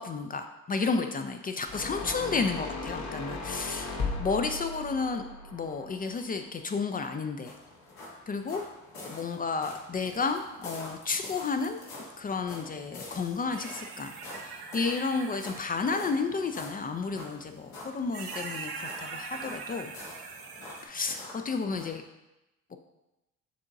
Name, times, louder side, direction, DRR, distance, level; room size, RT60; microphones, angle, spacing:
voice 1, 0.0-5.2 5.5-7.5 8.3-8.6 9.0-11.8 12.2-19.9 20.8-22.0 22.7-22.8, left 4 dB, 25° left, 6 dB, 0.3 m, -32 dB
sound 1, 1.7-6.9, left 3 dB, 50° left, 0.9 m, -37 dB
sound 2, 7.4-22.0, left 2 dB, 70° left, 1.3 m, -47 dB
sound 3, 13.5-15.9 17.3-17.4 18.1-20.9, right 4 dB, 75° right, 0.7 m, -41 dB
6.2 x 2.9 x 2.6 m, 0.95 s
supercardioid pair, 60°, 37 cm